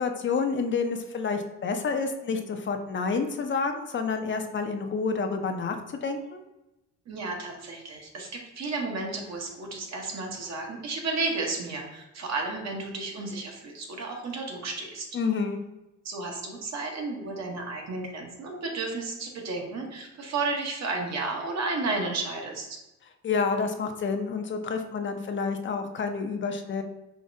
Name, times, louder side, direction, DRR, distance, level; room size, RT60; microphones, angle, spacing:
voice 1, 0.0-6.4 15.1-15.6 23.2-26.8, left 5 dB, 40° left, 6 dB, 0.5 m, -29 dB
voice 2, 7.1-15.1 16.0-22.8, right 3 dB, 60° right, 1 dB, 1.0 m, -32 dB
5.0 x 3.0 x 2.6 m, 0.96 s
cardioid pair, 90°, 30 cm